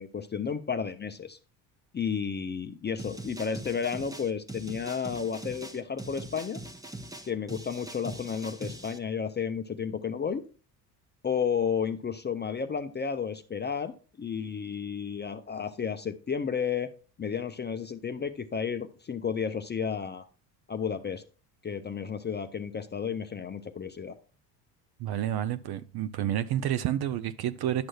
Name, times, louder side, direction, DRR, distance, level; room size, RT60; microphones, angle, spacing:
voice 1, 0.0-1.4 1.9-6.6 7.3-10.4 11.2-16.9 17.2-20.2 20.7-21.2 21.6-24.2, left 6 dB, 20° left, 0.5 m, -32 dB
sound 1, 3.0-9.0, right 1 dB, 5° right, 0.9 m, -42 dB
voice 2, 25.0-27.9, right 11 dB, 50° right, 0.6 m, -30 dB
10.5 x 6.2 x 2.3 m
hypercardioid pair, 65°, 48 cm